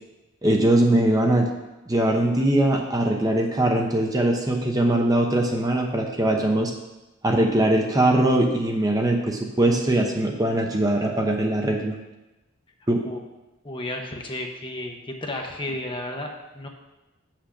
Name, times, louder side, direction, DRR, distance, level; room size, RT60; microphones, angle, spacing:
voice 1, 0.4-1.5 1.9-6.7 7.2-11.9 12.9-13.0, right 1 dB, 20° right, 2 dB, 0.8 m, -21 dB
voice 2, 13.6-16.7, left 1 dB, 25° left, 2 dB, 0.9 m, -33 dB
7.3 x 5.9 x 6.4 m, 1.0 s
head